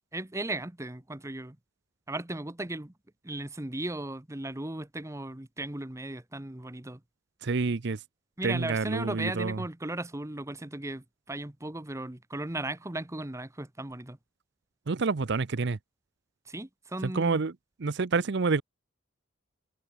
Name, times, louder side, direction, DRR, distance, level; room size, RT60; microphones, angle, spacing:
voice 1, 0.1-1.6 2.1-2.9 3.2-7.0 8.4-14.2 16.5-17.4, right 2 dB, 15° right, 1.0 m, -36 dB
voice 2, 7.4-8.0 8.4-9.6 14.9-15.8 17.0-17.5 17.8-18.6, right 4 dB, 60° right, 0.6 m, -28 dB
head